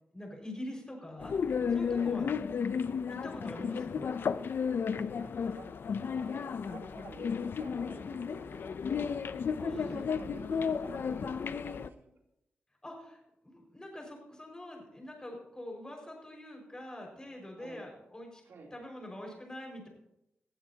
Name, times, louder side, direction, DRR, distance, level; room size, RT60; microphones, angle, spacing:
voice 1, 0.1-1.3 1.7-2.3 3.1-4.1 9.6-10.0 12.8-18.4 18.7-19.9, left 1 dB, 20° left, 1 dB, 5.3 m, -44 dB
sound 1, 1.2-11.9, left 6 dB, 65° left, 0.5 m, -33 dB
voice 2, 4.7-5.8 6.1-12.1 17.6-17.8 18.4-18.7, right 3 dB, 80° right, 0 dB, 3.2 m, -49 dB
19.0 x 15.5 x 2.8 m, 0.82 s
wide cardioid pair, 100°, 4 cm